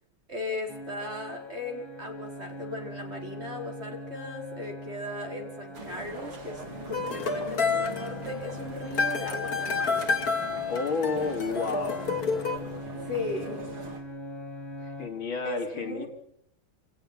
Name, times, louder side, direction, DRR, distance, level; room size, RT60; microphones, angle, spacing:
voice 1, 0.3-10.1 13.1-13.6 15.4-16.1, left 2 dB, 30° right, 1 dB, 5.0 m, -37 dB
sound 1, 0.7-15.1, left 1 dB, 10° right, 5.4 m, -42 dB
sound 2, 5.7-14.0, right 3 dB, 80° right, 4.5 m, -42 dB
sound 3, 6.9-12.6, left 4 dB, 45° left, 2.9 m, -29 dB
voice 2, 10.7-12.1 14.8-16.1, left 4 dB, 70° left, 4 dB, 3.6 m, -31 dB
28.5 x 18.0 x 5.8 m, 0.70 s
omnidirectional pair, 2.3 m